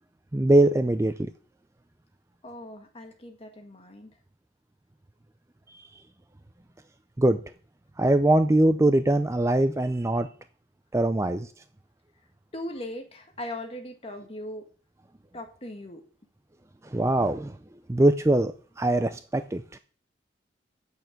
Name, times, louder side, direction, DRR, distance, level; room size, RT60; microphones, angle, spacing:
voice 1, 0.3-1.1 5.7-5.8 7.2-7.4 8.0-10.3 10.9-11.5 16.9-17.5 17.9-19.8, right 1 dB, 15° right, 10 dB, 0.4 m, -22 dB
voice 2, 2.4-4.2 12.5-14.7 15.3-16.0, left 1 dB, 30° left, 4 dB, 1.7 m, -39 dB
8.3 x 6.7 x 7.6 m, 0.42 s
head